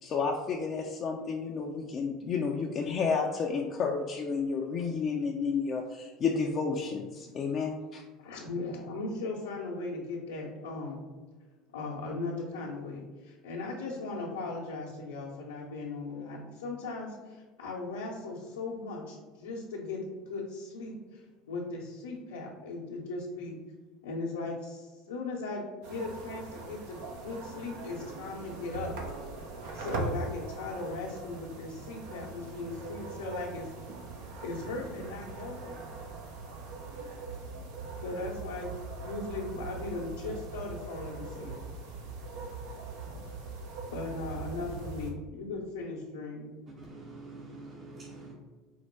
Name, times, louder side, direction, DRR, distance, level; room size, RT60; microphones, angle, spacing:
voice 1, 0.0-8.0, left 5 dB, 45° left, 0 dB, 0.4 m, -31 dB
voice 2, 8.2-11.0 11.7-23.6 24.0-29.0 29.7-33.7 34.4-35.9 38.0-41.5 43.9-46.6, left 3 dB, 85° left, -7 dB, 0.8 m, -38 dB
sound 1, 25.8-45.1, right 3 dB, 70° right, 0.8 m, -41 dB
voice 3, 46.8-48.3, right 2 dB, 50° right, -6 dB, 1.2 m, -46 dB
4.6 x 2.2 x 4.3 m, 1.3 s
hypercardioid pair, 75°, 0 cm